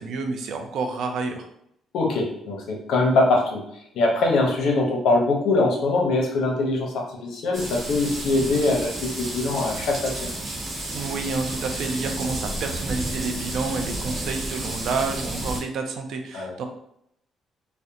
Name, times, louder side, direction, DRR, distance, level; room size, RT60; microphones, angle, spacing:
voice 1, 0.0-1.5 10.9-16.6, right 4 dB, 70° right, 5 dB, 0.4 m, -29 dB
voice 2, 1.9-3.6 3.9-8.9 9.3-10.3 16.3-16.5, left 2 dB, 80° left, 0 dB, 0.6 m, -22 dB
sound 1, 7.5-15.6, right 1 dB, 55° right, 0.9 m, -31 dB
2.4 x 2.1 x 2.8 m, 0.73 s
cardioid pair, 105°, 0 cm